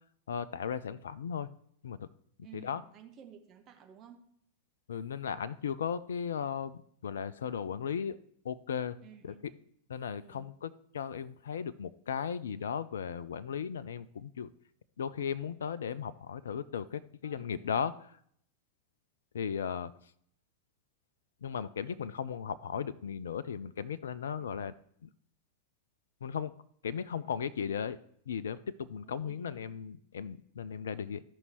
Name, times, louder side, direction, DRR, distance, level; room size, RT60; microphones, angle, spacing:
voice 1, 0.3-1.5 1.8-2.1 2.5-2.8 4.9-8.2 8.4-9.0 9.2-9.3 9.9-14.5 15.0-17.9 19.3-19.9 21.4-24.7 25.0-25.1 26.2-26.5 26.8-28.0 28.3-31.2, left 7 dB, 65° left, 17 dB, 0.3 m, -36 dB
voice 2, 2.4-4.2 9.0-9.4 10.2-10.6 17.4-17.8 24.4-24.7 29.0-29.7, right 9 dB, 30° right, 4 dB, 1.2 m, -54 dB
14.5 x 5.3 x 2.9 m, 0.66 s
figure-of-eight pair, 90°, 0 cm